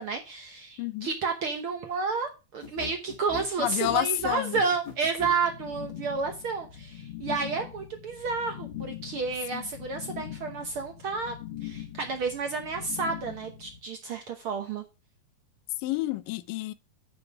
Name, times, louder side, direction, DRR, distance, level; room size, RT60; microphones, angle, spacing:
voice 1, 0.0-11.3 11.6-14.8, right 4 dB, 70° right, 1.3 m, -31 dB
voice 2, 0.8-1.1 3.6-4.6 9.5-9.7 15.8-16.7, left 15 dB, 85° left, 2.3 m, -29 dB
sound 1, 2.6-5.4, left 5 dB, 35° left, 2.1 m, -40 dB
sound 2, 5.2-13.8, left 11 dB, 60° left, 1.8 m, -42 dB
9.4 x 5.4 x 5.7 m
omnidirectional pair, 3.8 m